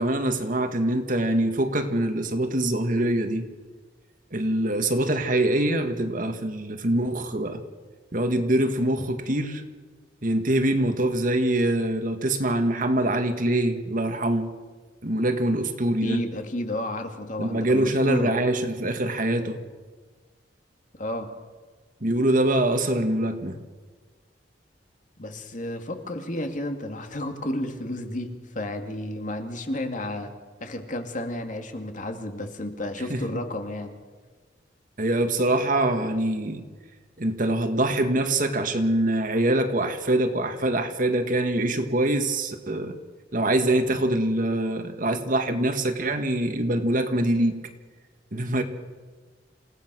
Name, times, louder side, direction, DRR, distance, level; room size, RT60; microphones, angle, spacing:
voice 1, 0.0-3.5 4.3-7.6 8.1-9.6 10.2-14.5 15.0-16.2 17.4-19.6 22.0-23.6 33.1-33.4 35.0-36.7 37.2-43.0 43.3-47.6 48.3-48.6, right 1 dB, 45° right, 7 dB, 1.9 m, -24 dB
voice 2, 16.0-18.3 21.0-21.3 25.2-30.3 30.6-34.0, left 1 dB, 45° left, 5 dB, 2.3 m, -32 dB
28.0 x 17.5 x 6.3 m, 1.4 s
head